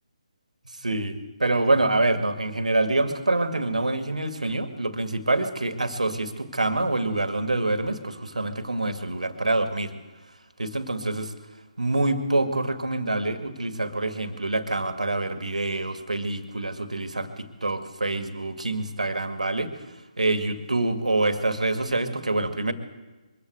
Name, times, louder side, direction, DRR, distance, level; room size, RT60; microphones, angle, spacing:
voice 1, 0.8-9.9 10.6-11.3 11.8-19.7 20.2-22.7, right 2 dB, 80° right, 8 dB, 2.3 m, -26 dB
22.5 x 15.0 x 8.1 m, 1.2 s
figure-of-eight pair, 145°, 4 cm